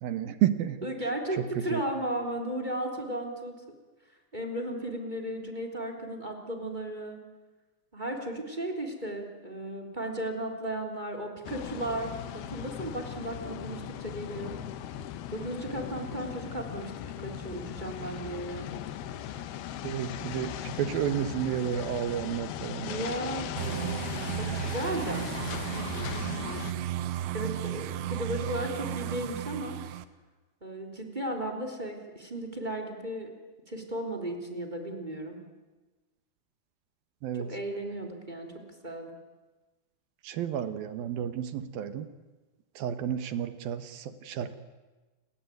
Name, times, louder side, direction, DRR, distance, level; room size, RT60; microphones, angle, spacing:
voice 1, 0.0-0.8 1.4-1.8 19.8-23.1 37.2-37.5 40.2-42.1 42.8-44.6, right 10 dB, 70° right, 11 dB, 2.7 m, -31 dB
voice 2, 0.8-3.6 4.3-7.2 7.9-14.5 15.3-16.9 17.2-18.7 22.8-26.8 27.3-29.8 30.6-33.3 33.7-35.4 37.4-39.1, right 1 dB, 10° right, 4 dB, 3.2 m, -35 dB
sound 1, 11.4-26.7, left 10 dB, 70° left, 2.9 m, -38 dB
sound 2, 23.6-30.0, right 12 dB, 85° right, 3.3 m, -34 dB
29.5 x 21.5 x 9.4 m, 1.2 s
omnidirectional pair, 4.8 m